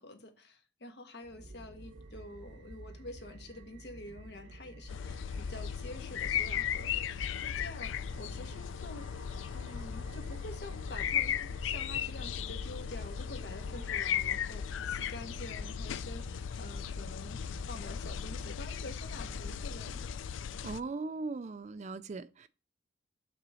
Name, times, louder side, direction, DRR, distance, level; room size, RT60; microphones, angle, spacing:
voice 1, 0.0-9.1 9.5-20.2, left 1 dB, 60° left, 1.3 m, -48 dB
sound 1, 1.2-20.2, right 1 dB, 85° right, 1.2 m, -51 dB
sound 2, 4.9-20.8, left 8 dB, 90° left, 0.4 m, -36 dB
voice 2, 20.6-22.5, right 3 dB, 40° right, 0.4 m, -39 dB
6.0 x 3.9 x 6.2 m
head